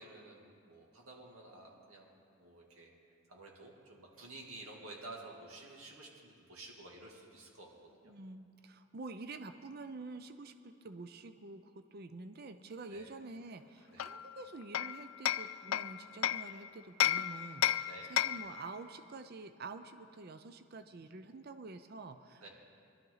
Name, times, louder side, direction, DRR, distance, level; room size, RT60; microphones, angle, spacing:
voice 1, 0.0-2.1 2.4-2.9 3.3-7.7 8.0-8.1 12.9-13.1 13.9-14.1 17.8-18.1 22.4-22.5, right 2 dB, 85° right, -2 dB, 2.5 m, -51 dB
voice 2, 8.0-22.5, right 3 dB, 45° right, 9 dB, 0.5 m, -48 dB
Hammer, 14.0-16.5 17.0-18.6, left 12 dB, 75° left, 0.3 m, -33 dB
22.5 x 12.0 x 4.0 m, 2.4 s
head